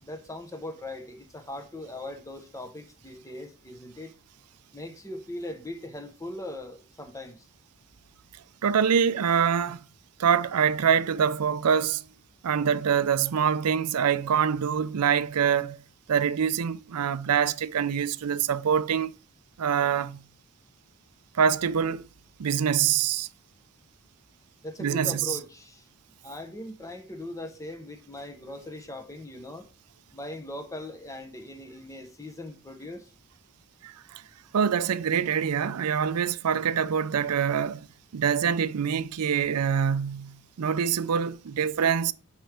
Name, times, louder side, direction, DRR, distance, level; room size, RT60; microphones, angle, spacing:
voice 1, 0.0-4.1 4.7-7.4 24.6-25.8 26.2-29.7 30.1-33.1, left 1 dB, 15° left, 1.0 m, -40 dB
voice 2, 8.6-9.8 10.2-12.0 12.4-15.8 16.1-19.2 19.6-20.2 21.4-22.0 22.4-23.3 24.8-25.4 33.8-34.2 34.5-37.8 38.1-42.1, right 7 dB, 85° right, 0.5 m, -25 dB
10.5 x 4.7 x 3.4 m
head